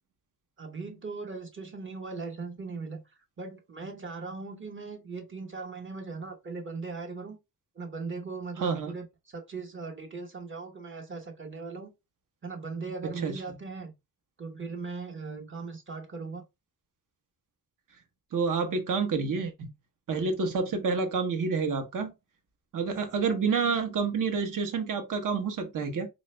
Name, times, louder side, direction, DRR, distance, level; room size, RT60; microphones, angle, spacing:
voice 1, 0.6-3.0 3.4-7.4 7.7-11.9 12.4-13.9 14.4-16.4, right 4 dB, 35° right, 1.0 m, -39 dB
voice 2, 8.6-8.9 13.2-13.4 18.3-19.7 20.1-22.1 22.7-26.1, right 5 dB, 65° right, 0.9 m, -28 dB
4.0 x 2.4 x 3.2 m
wide cardioid pair, 120°, 34 cm